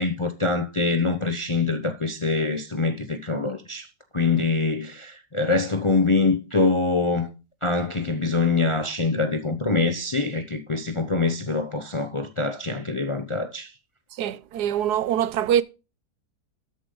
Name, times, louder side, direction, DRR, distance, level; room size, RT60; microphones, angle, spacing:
voice 1, 0.0-3.9 4.1-7.3 7.6-13.7, left 3 dB, 30° left, 0.5 m, -24 dB
voice 2, 14.2-15.6, right 10 dB, 80° right, 1.2 m, -23 dB
13.0 x 8.5 x 3.8 m
omnidirectional pair, 1.7 m